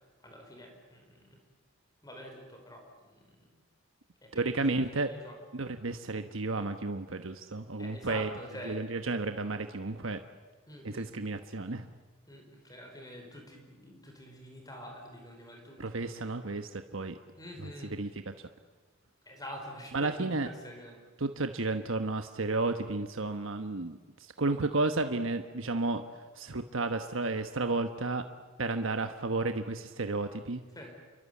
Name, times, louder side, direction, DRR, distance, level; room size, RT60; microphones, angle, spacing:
voice 1, 0.2-1.4 2.0-3.5 4.2-5.3 7.8-8.8 10.7-11.1 12.3-16.2 17.4-18.0 19.2-21.0 30.7-30.9, equal, 15° left, 2 dB, 5.1 m, -47 dB
voice 2, 4.3-5.1 5.5-8.3 8.6-10.2 10.8-11.9 15.8-17.2 17.6-17.7 18.0-18.3 19.9-20.5 21.2-26.0 26.3-28.2 28.6-30.6, right 3 dB, 70° right, 7 dB, 1.2 m, -32 dB
29.0 x 23.0 x 8.5 m, 1.4 s
head